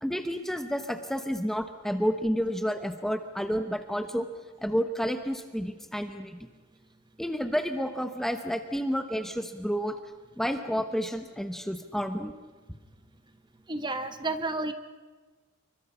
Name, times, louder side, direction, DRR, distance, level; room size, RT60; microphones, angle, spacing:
voice 1, 0.0-4.3 4.6-6.5 7.2-10.0 10.4-12.3, equal, ahead, 7 dB, 1.0 m, -30 dB
voice 2, 13.7-14.7, right 2 dB, 20° right, 9 dB, 1.2 m, -31 dB
28.5 x 24.0 x 5.7 m, 1.3 s
head